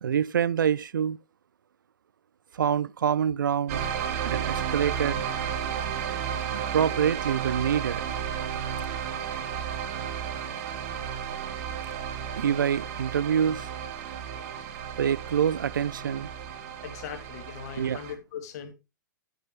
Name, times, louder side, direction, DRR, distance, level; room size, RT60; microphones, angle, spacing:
voice 1, 0.0-1.2 2.5-3.9 4.2-5.2 6.5-8.0 12.4-13.7 15.0-16.3 17.8-18.0, right 8 dB, 75° right, 0.4 m, -26 dB
sound 1, 3.7-18.1, right 8 dB, 45° right, 1.4 m, -33 dB
voice 2, 16.8-18.7, left 8 dB, 55° left, 2.2 m, -39 dB
9.8 x 8.9 x 3.0 m
hypercardioid pair, 115°, 11 cm